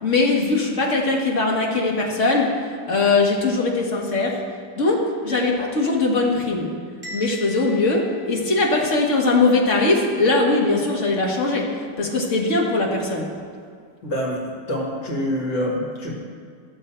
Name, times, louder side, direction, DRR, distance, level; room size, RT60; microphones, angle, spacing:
voice 1, 0.0-2.5 2.9-4.4 4.8-6.7 7.1-11.7 12.0-13.3, left 3 dB, 40° left, -1 dB, 1.6 m, -20 dB
Bell, 7.0-9.1, left 2 dB, 25° right, 1.8 m, -40 dB
voice 2, 14.0-14.4 14.7-16.2, equal, 60° left, -3 dB, 2.4 m, -26 dB
13.5 x 7.1 x 4.4 m, 2.2 s
omnidirectional pair, 2.1 m